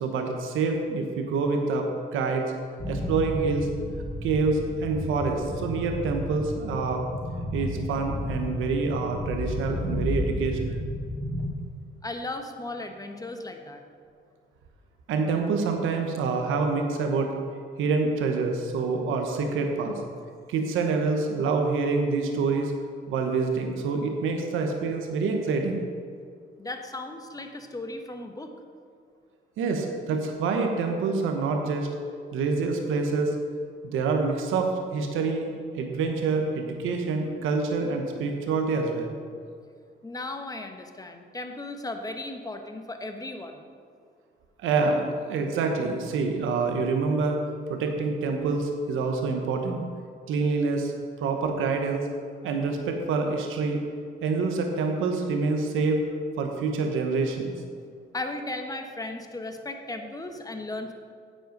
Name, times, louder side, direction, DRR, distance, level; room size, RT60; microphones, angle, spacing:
voice 1, 0.0-2.4 2.9-3.7 4.2-7.0 7.5-10.8 15.1-17.3 17.8-20.0 20.5-22.7 23.1-25.8 29.6-31.9 32.3-33.3 33.8-39.2 44.6-47.4 47.7-49.8 50.3-50.9 51.2-52.0 52.4-53.8 54.2-56.0 56.4-57.5, right 4 dB, 90° right, 3 dB, 1.2 m, -26 dB
sound 1, 2.8-11.5, left 1 dB, 5° right, 2.2 m, -32 dB
voice 2, 12.0-13.8 26.6-28.6 40.0-43.6 58.1-60.9, left 2 dB, 20° left, 5 dB, 1.1 m, -36 dB
10.0 x 7.8 x 5.3 m, 2.2 s
cardioid pair, 90°, 20 cm